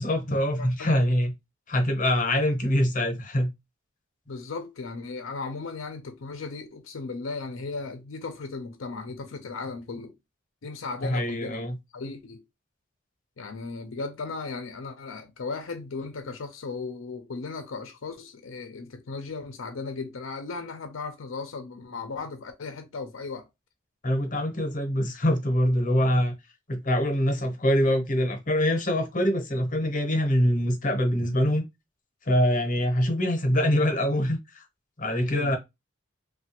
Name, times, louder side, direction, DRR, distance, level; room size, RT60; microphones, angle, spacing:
voice 1, 0.0-1.3 1.7-3.5 11.0-11.8 24.0-26.3 26.7-31.6 32.3-34.6 35.0-35.6, equal, 40° left, 0.8 m, -24 dB
voice 2, 0.6-1.0 4.3-10.1 10.6-11.7 11.9-12.4 13.4-23.5 35.2-35.5, left 4 dB, 75° left, 0.5 m, -36 dB
3.2 x 2.3 x 2.9 m
head